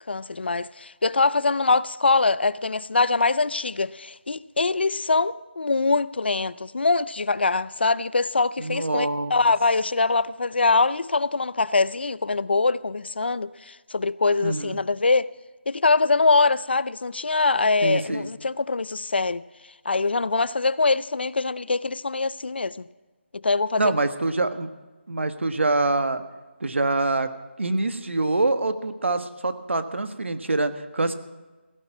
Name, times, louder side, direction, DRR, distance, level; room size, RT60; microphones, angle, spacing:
voice 1, 0.1-15.3 15.7-19.4 19.9-22.8 23.4-23.8, left 3 dB, 60° left, 0.5 m, -23 dB
voice 2, 8.6-9.5 14.4-14.8 17.8-18.3 23.8-24.7 25.1-26.2 26.6-27.3 27.6-31.1, right 2 dB, 80° right, 1.4 m, -25 dB
16.5 x 11.5 x 6.0 m
figure-of-eight pair, 180°, 6 cm